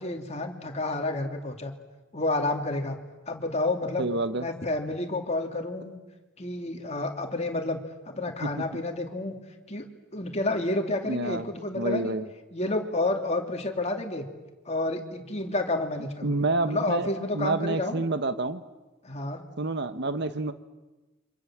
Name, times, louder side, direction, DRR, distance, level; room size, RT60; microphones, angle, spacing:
voice 1, 0.0-1.7 2.1-3.0 3.3-4.1 4.4-6.0 6.4-7.8 8.1-9.4 9.7-9.9 10.1-12.2 12.5-14.3 14.7-16.3 16.7-18.0 19.0-19.4, left 2 dB, 30° left, 4 dB, 2.9 m, -30 dB
voice 2, 4.0-4.5 8.4-8.5 11.1-11.5 11.7-12.3 16.2-18.6 19.6-20.5, right 2 dB, 55° right, 11 dB, 1.3 m, -28 dB
30.0 x 26.0 x 7.5 m, 1.1 s
head